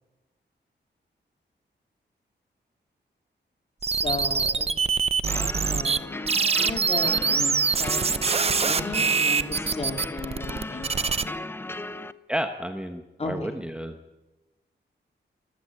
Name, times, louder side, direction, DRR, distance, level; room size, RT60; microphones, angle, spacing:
voice 1, 3.8-4.7 5.6-11.3 13.2-13.5, left 2 dB, 35° left, 4 dB, 3.3 m, -35 dB
sound 1, 3.8-6.0 6.3-11.2, right 5 dB, 35° right, 0.7 m, -24 dB
sound 2, 5.3-12.1, left 2 dB, 10° left, 0.7 m, -36 dB
voice 2, 12.3-14.0, equal, 5° right, 6 dB, 1.0 m, -31 dB
24.0 x 15.0 x 8.9 m, 1.1 s
wide cardioid pair, 180°, 18 cm